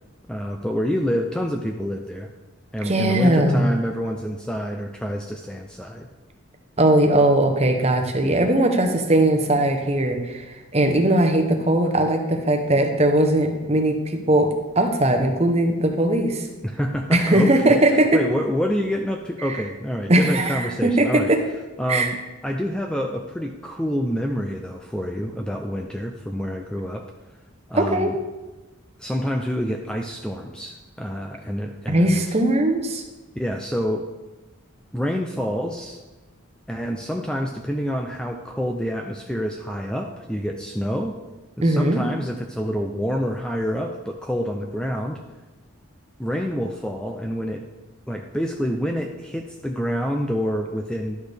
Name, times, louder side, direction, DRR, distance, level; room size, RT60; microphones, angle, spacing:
voice 1, 0.3-2.3 2.7-6.1 16.6-21.3 21.8-22.2 22.4-27.0 27.7-28.2 29.0-32.2 33.3-34.0 34.9-36.0 36.7-41.1 41.6-45.2 46.2-47.6 48.1-51.2, equal, 5° left, 2 dB, 0.4 m, -27 dB
voice 2, 2.8-3.7 6.8-10.4 10.7-16.4 17.1-18.2 19.4-19.6 20.1-21.4 21.9-22.1 27.7-28.1 31.9-33.0 41.6-42.0, right 1 dB, 30° right, 4 dB, 0.9 m, -19 dB
11.5 x 6.3 x 3.4 m, 1.1 s
head